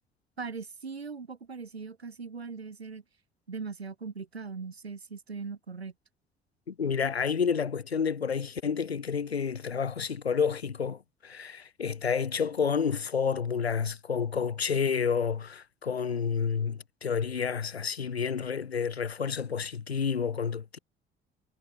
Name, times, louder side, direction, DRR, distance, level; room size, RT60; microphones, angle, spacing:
voice 1, 0.4-3.0 3.5-5.9, right 5 dB, 90° right, 0.8 m, -40 dB
voice 2, 6.7-20.8, left 6 dB, 90° left, 0.5 m, -30 dB
figure-of-eight pair, 50°, 31 cm